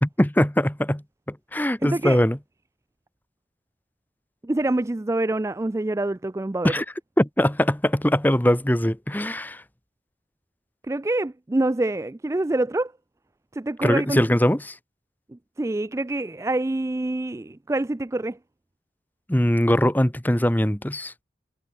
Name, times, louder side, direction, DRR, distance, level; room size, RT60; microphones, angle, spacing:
voice 1, 0.0-1.0 1.3-2.4 6.6-6.8 7.2-9.6 13.8-14.7 19.3-21.1, equal, 10° left, 1.0 m, -21 dB
voice 2, 1.8-2.2 4.4-6.7 10.8-12.9 13.5-14.2 15.6-18.4, right 2 dB, 15° right, 0.4 m, -26 dB
head